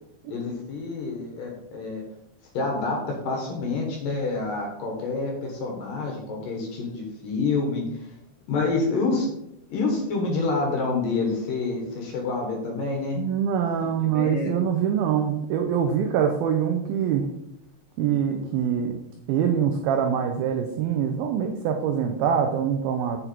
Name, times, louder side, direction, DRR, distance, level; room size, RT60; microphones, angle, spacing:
voice 1, 0.3-2.0 2.5-8.1 8.5-9.3 9.7-13.2 14.1-14.5, left 3 dB, 60° left, 1 dB, 2.6 m, -27 dB
voice 2, 13.2-17.3 18.0-19.0 19.3-23.2, right 8 dB, 85° right, 5 dB, 2.1 m, -24 dB
8.0 x 6.0 x 4.5 m, 0.83 s
omnidirectional pair, 5.1 m